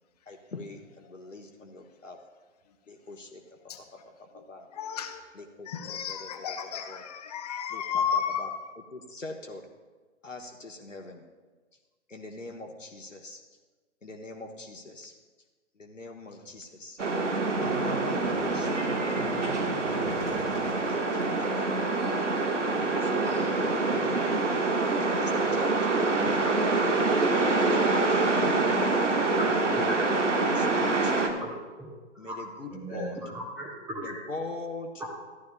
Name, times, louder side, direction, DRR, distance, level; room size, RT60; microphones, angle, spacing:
voice 1, 0.3-2.2 2.9-3.4 3.8-4.7 5.3-6.6 6.9-7.0 7.7-8.5 8.9-9.6 10.2-11.2 12.1-13.4 14.0-15.1 15.8-17.0 17.5-20.2 20.9-22.3 22.7-24.2 25.2-27.1 27.6-29.0 30.4-31.5 32.2-33.2 34.0-35.0, left 2 dB, 85° left, 2 dB, 1.2 m, -42 dB
voice 2, 4.7-5.2 5.6-8.7 17.4-17.7, left 7 dB, 35° left, 7 dB, 0.7 m, -33 dB
sound 1, 17.0-31.3, right 3 dB, 75° right, 1.4 m, -26 dB
sound 2, 17.2-22.2, right 2 dB, 50° right, 3.5 m, -43 dB
voice 3, 29.4-30.0 31.4-31.5 31.8-31.9 32.2-32.4 32.7-34.1 35.0-35.1, equal, 5° right, -2 dB, 0.6 m, -37 dB
15.0 x 11.5 x 2.2 m, 1.3 s
figure-of-eight pair, 125°, 37 cm